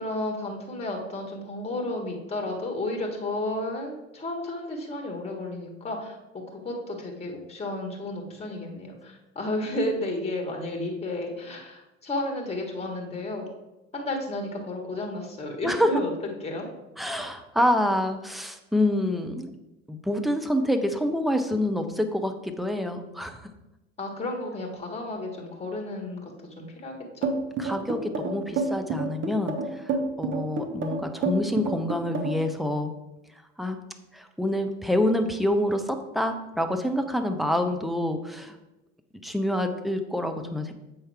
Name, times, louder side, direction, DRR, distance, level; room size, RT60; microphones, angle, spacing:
voice 1, 0.0-13.5 13.9-16.1 16.4-16.7 24.0-26.3 26.6-26.9, left 1 dB, 15° left, 1 dB, 1.5 m, -32 dB
voice 2, 15.6-15.9 17.0-19.5 19.9-23.4 27.6-32.9 33.6-33.8 34.1-38.6 39.2-40.7, left 1 dB, ahead, 6 dB, 0.6 m, -27 dB
sound 1, 27.2-32.5, right 3 dB, 35° right, 1.0 m, -28 dB
7.7 x 5.6 x 3.4 m, 0.99 s
figure-of-eight pair, 70°, 36 cm